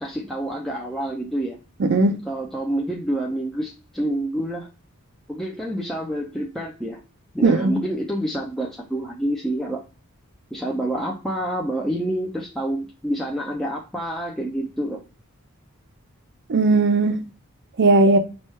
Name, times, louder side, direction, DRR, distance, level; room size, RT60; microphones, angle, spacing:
voice 1, 0.0-1.6 2.2-4.7 5.3-7.0 7.3-9.8 10.5-15.0, right 1 dB, ahead, 0.4 m, -27 dB
voice 2, 1.8-2.2 7.4-7.8 16.5-17.2 17.8-18.2, right 3 dB, 55° right, 0.5 m, -17 dB
3.0 x 2.3 x 4.2 m
head